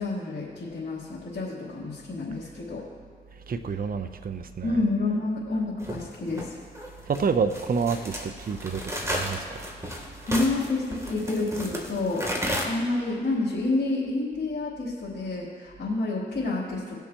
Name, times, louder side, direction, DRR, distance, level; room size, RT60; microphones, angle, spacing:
voice 1, 0.0-2.8 4.6-6.6 10.2-17.0, left 2 dB, 65° left, -8 dB, 3.1 m, -29 dB
voice 2, 3.3-4.8 7.1-9.6, right 5 dB, 50° right, 9 dB, 0.7 m, -29 dB
sound 1, 5.8-12.6, equal, 15° right, 2.9 m, -33 dB
21.0 x 7.0 x 3.0 m, 2.1 s
supercardioid pair, 45°, 19 cm